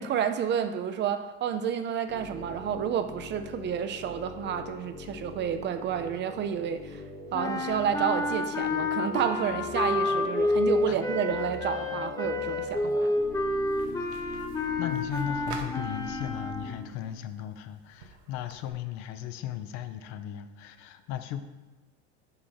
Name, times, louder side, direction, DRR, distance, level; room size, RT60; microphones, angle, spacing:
voice 1, 0.0-13.1, right 8 dB, 35° right, 9 dB, 0.5 m, -30 dB
sound 1, 2.1-16.9, left 3 dB, 35° left, 1.2 m, -42 dB
sound 2, 7.3-16.9, left 2 dB, 10° left, 0.7 m, -29 dB
sound 3, 12.6-18.7, right 4 dB, 85° right, 1.0 m, -49 dB
voice 2, 14.8-21.4, left 10 dB, 55° left, 9 dB, 0.7 m, -36 dB
5.7 x 4.2 x 5.6 m, 1.1 s
supercardioid pair, 105°, 32 cm